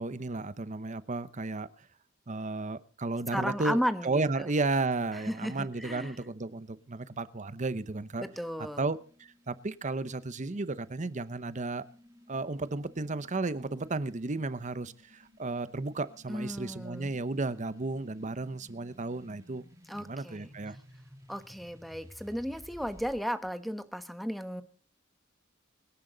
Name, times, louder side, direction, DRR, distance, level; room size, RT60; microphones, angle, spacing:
voice 1, 0.0-1.7 2.3-8.3 8.8-11.8 12.3-19.6 19.9-20.8, right 3 dB, 40° right, 15 dB, 0.8 m, -33 dB
voice 2, 3.3-4.5 5.1-6.2 8.2-8.9 16.3-17.1 19.9-20.5 21.3-24.6, equal, ahead, 10 dB, 1.2 m, -34 dB
sound 1, 5.7-23.2, equal, 15° right, 3.3 m, -57 dB
24.5 x 10.5 x 3.9 m, 0.40 s
head